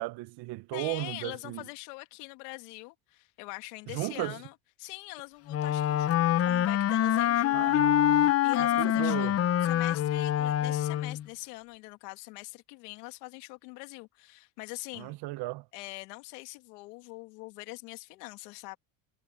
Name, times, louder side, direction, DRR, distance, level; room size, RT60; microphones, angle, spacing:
voice 1, 0.0-1.6 3.9-4.4 7.5-8.3 8.8-9.4 15.0-15.6, right 21 dB, 55° right, 0.9 m, -35 dB
voice 2, 0.7-15.2 15.7-18.8, left 24 dB, 90° left, 2.3 m, -43 dB
Wind instrument woodwind instrument, 5.5-11.2, left 12 dB, 30° left, 0.7 m, -25 dB
cardioid pair, 125°, 46 cm